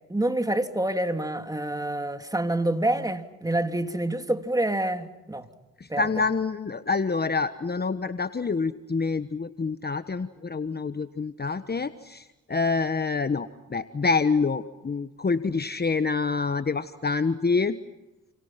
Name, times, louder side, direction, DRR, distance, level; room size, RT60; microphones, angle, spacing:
voice 1, 0.1-5.5 5.9-6.0, right 1 dB, 10° right, 3.0 m, -27 dB
voice 2, 5.8-17.8, left 4 dB, 30° left, 1.3 m, -27 dB
29.5 x 29.5 x 5.9 m
supercardioid pair, 60°, 34 cm